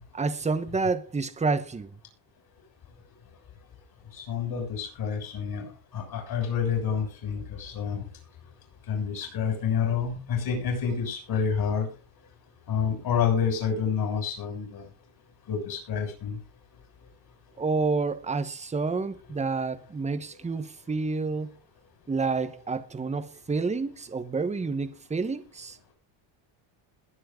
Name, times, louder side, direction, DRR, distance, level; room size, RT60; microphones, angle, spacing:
voice 1, 0.1-1.9 17.6-21.5 22.1-25.8, right 4 dB, 15° right, 1.2 m, -29 dB
voice 2, 4.1-8.0 8.9-11.9 12.7-14.8 15.5-16.4, left 7 dB, 50° left, 6.6 m, -28 dB
21.0 x 7.6 x 3.8 m
cardioid pair, 140°, 49 cm